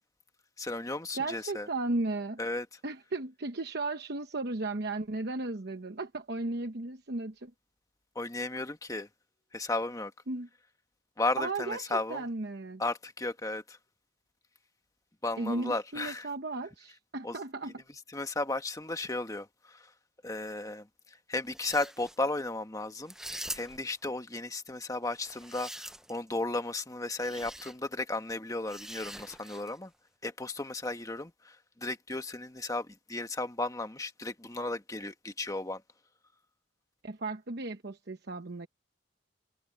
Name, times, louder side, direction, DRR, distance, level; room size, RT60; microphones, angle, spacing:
voice 1, 0.6-1.7 2.4-2.7 8.1-9.1 9.5-10.1 11.2-12.2 12.8-13.8 15.2-16.3 17.2-17.4 18.1-19.5 20.2-20.8 21.3-29.9 30.2-31.5 31.8-35.8, left 2 dB, 15° left, 1.2 m, -34 dB
voice 2, 1.1-2.4 2.8-7.5 10.3-10.5 11.4-12.8 15.4-17.8 37.0-38.7, right 2 dB, 55° right, 1.0 m, -35 dB
sound 1, 21.4-22.2 23.1-23.9 25.1-26.3 27.2-27.7 28.7-29.8, right 1 dB, 5° right, 0.5 m, -43 dB
head